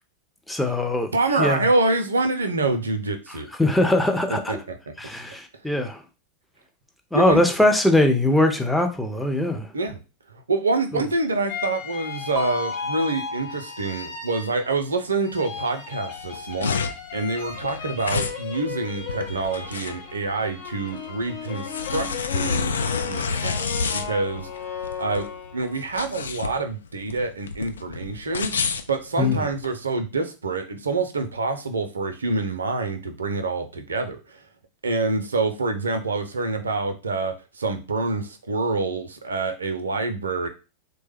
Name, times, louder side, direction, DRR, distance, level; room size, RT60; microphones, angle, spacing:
voice 1, 0.5-1.1 1.4-1.6 3.6-4.6 5.0-6.0 7.1-9.7 10.9-11.0 29.2-29.5, left 2 dB, 5° left, 0.6 m, -21 dB
voice 2, 1.1-3.5 4.5-4.9 7.1-7.4 9.7-10.0 10.3-22.1 22.3-25.3 25.5-34.4 34.8-40.5, right 3 dB, 70° right, 0.5 m, -26 dB
sound 1, 11.5-14.9 15.2-25.8, left 6 dB, 50° left, 0.7 m, -36 dB
Mallet percussion, 12.4-14.4, left 3 dB, 25° left, 1.0 m, -34 dB
sound 2, 16.2-29.7, left 5 dB, 70° left, 0.3 m, -29 dB
3.1 x 2.2 x 3.3 m
figure-of-eight pair, 90°, 0 cm